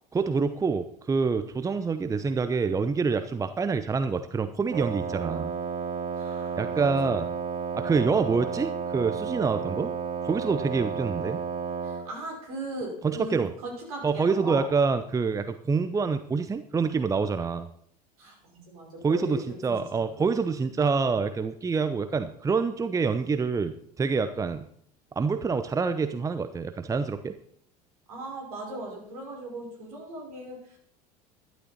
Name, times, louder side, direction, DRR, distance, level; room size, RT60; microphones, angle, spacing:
voice 1, 0.1-5.5 6.6-7.3 7.7-9.9 10.2-11.4 13.0-13.5 14.0-17.7 19.0-24.6 25.2-27.3, right 4 dB, 15° right, 10 dB, 0.8 m, -26 dB
Wind instrument woodwind instrument, 4.7-12.1, right 6 dB, 45° right, 1.4 m, -32 dB
voice 2, 6.1-7.2 11.8-14.7 18.2-20.3 28.1-30.8, right 1 dB, 65° right, 0 dB, 5.5 m, -38 dB
12.5 x 11.5 x 4.2 m, 0.63 s
figure-of-eight pair, 70°, 20 cm